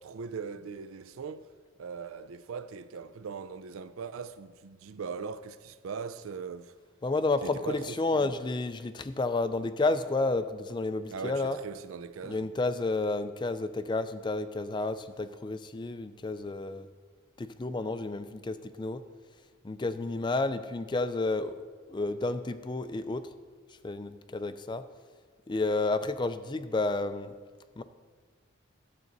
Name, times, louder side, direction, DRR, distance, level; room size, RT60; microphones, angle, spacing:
voice 1, 0.0-1.5 1.8-6.7 7.4-8.3 11.1-12.5, right 5 dB, 80° right, 0.4 m, -40 dB
voice 2, 7.0-11.6 12.2-16.9 17.4-19.0 19.6-23.3 23.8-24.8 25.5-27.3 27.8-27.9, left 3 dB, 20° left, 0.3 m, -31 dB
12.0 x 7.6 x 4.0 m
head